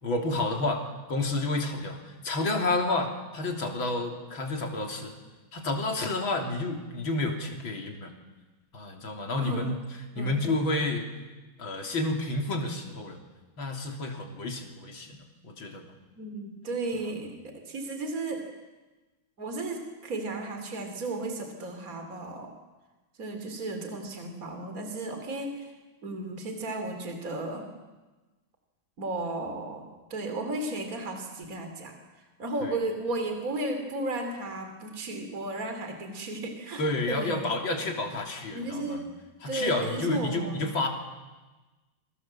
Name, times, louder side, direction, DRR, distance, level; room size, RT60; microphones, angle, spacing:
voice 1, 0.0-0.8 1.1-5.1 5.5-8.1 8.7-9.8 10.2-11.1 11.6-13.2 13.6-15.8 32.6-32.7 36.8-39.0 39.4-40.9, left 2 dB, 70° left, 3 dB, 4.0 m, -30 dB
voice 2, 9.4-9.7 10.2-10.4 16.2-18.5 19.4-22.5 23.2-25.7 26.0-27.7 29.0-32.0 32.4-37.5 38.5-39.1 39.5-40.7, right 2 dB, 40° right, 5 dB, 3.4 m, -34 dB
29.0 x 25.5 x 7.5 m, 1.2 s
omnidirectional pair, 2.2 m